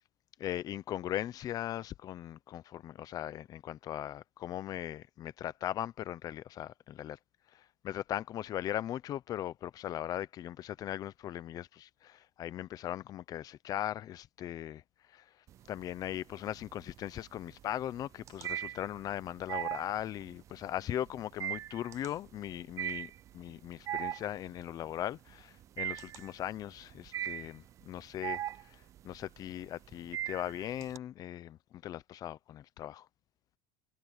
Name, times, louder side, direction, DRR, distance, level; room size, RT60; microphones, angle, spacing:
voice 1, 0.4-7.2 7.5-14.8 15.1-15.2 15.7-28.4 29.0-33.1, left 12 dB, 30° left, 0.7 m, -39 dB
sound 1, 15.5-16.1 16.5-31.0, right 12 dB, 25° right, 0.3 m, -39 dB
cardioid pair, 165°, 12 cm